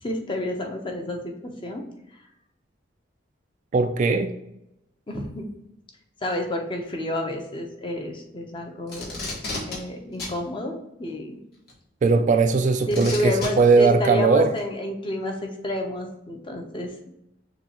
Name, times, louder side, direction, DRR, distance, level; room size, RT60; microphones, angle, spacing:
voice 1, 0.0-1.8 5.1-5.5 6.2-9.2 9.7-11.4 12.9-17.1, left 1 dB, 25° left, 2 dB, 0.7 m, -29 dB
voice 2, 3.7-4.3 12.0-14.5, right 4 dB, 40° right, 8 dB, 0.3 m, -19 dB
Packing tape duct tape, 8.9-9.8 10.2-10.4 11.7-11.8 12.9-13.5 14.6-14.7, left 2 dB, 55° left, 1.6 m, -32 dB
6.5 x 2.4 x 3.0 m, 0.82 s
head